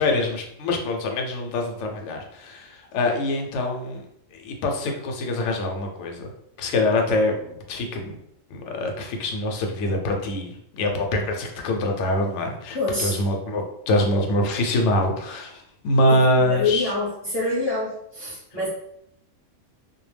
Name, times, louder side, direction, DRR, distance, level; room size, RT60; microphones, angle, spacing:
voice 1, 0.0-4.0 4.4-6.3 6.6-8.2 8.5-16.9, left 1 dB, 70° left, 3 dB, 0.8 m, -24 dB
voice 2, 12.7-13.2 16.1-18.7, left 3 dB, 25° left, -8 dB, 0.7 m, -26 dB
2.2 x 2.1 x 3.2 m, 0.73 s
omnidirectional pair, 1.4 m